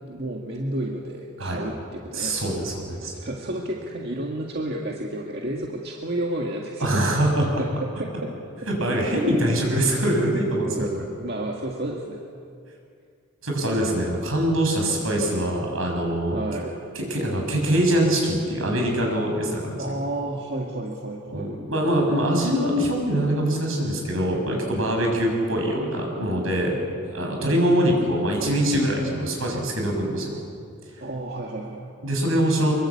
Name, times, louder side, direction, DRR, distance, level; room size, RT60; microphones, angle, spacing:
voice 1, 0.0-2.6 3.1-7.0 7.6-8.3 10.6-12.2 16.3-16.7 19.8-21.6 27.4-27.6 31.0-31.9, right 1 dB, 50° right, -1 dB, 2.0 m, -31 dB
voice 2, 1.4-1.7 2.1-3.1 6.8-7.4 8.6-10.7 13.4-16.4 16.9-19.8 21.3-26.8 27.1-30.4 32.0-32.7, right 1 dB, 80° right, 1 dB, 6.7 m, -23 dB
24.5 x 22.5 x 8.6 m, 2.4 s
head